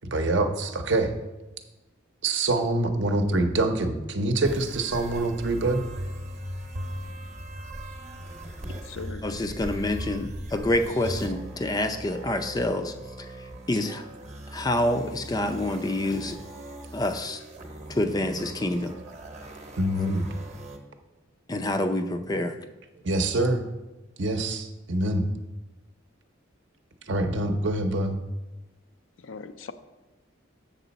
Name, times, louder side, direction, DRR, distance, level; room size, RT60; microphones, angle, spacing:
voice 1, 0.0-1.1 2.2-5.8 19.8-20.2 23.0-23.6 24.2-25.2 27.1-28.2, right 2 dB, 60° right, 5 dB, 0.7 m, -25 dB
sound 1, 4.4-20.8, right 1 dB, 35° right, 0.9 m, -39 dB
voice 2, 8.7-9.2 29.2-29.7, left 4 dB, 75° left, 11 dB, 0.5 m, -39 dB
voice 3, 9.2-14.1 14.5-16.4 16.9-17.4 17.9-18.9 20.0-20.1 21.5-22.6, left 1 dB, 20° left, 8 dB, 0.4 m, -27 dB
7.3 x 6.8 x 4.0 m, 1.1 s
head